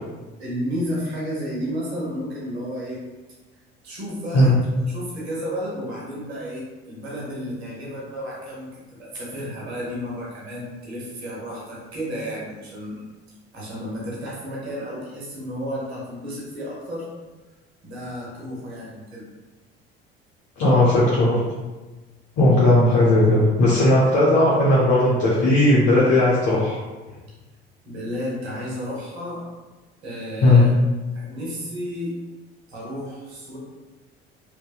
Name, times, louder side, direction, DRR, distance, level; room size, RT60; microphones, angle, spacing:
voice 1, 0.4-3.0 3.8-13.0 13.5-17.1 17.8-19.2 27.8-29.5 30.0-30.7 31.1-32.2 32.7-33.6, equal, 85° right, -5 dB, 0.8 m, -32 dB
voice 2, 20.6-21.4 22.4-26.8 30.4-30.6, left 1 dB, 55° left, -7 dB, 0.7 m, -16 dB
2.8 x 2.1 x 2.2 m, 1.2 s
hypercardioid pair, 60°, 31 cm